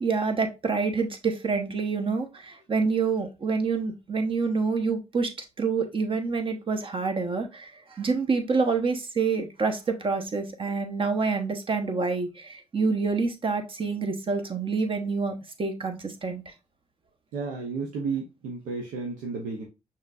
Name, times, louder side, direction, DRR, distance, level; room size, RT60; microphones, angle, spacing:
voice 1, 0.0-5.3 5.6-16.4, right 4 dB, 40° right, 6 dB, 1.0 m, -27 dB
voice 2, 17.3-19.6, right 4 dB, 90° right, 0 dB, 0.7 m, -32 dB
5.8 x 2.8 x 2.4 m, 0.26 s
supercardioid pair, 60°, 13 cm